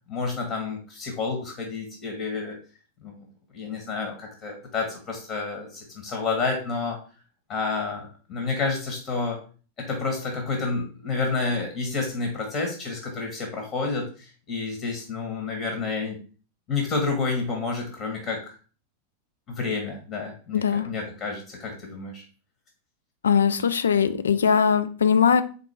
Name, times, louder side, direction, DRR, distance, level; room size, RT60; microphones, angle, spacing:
voice 1, 0.1-2.6 3.0-3.2 3.5-7.0 7.5-9.4 9.8-16.2 16.7-18.6 19.5-22.2, left 4 dB, 35° left, 2 dB, 1.3 m, -29 dB
voice 2, 20.5-20.9 23.2-25.4, left 7 dB, 70° left, 11 dB, 0.4 m, -20 dB
4.2 x 3.8 x 3.3 m, 0.38 s
figure-of-eight pair, 90°, 0 cm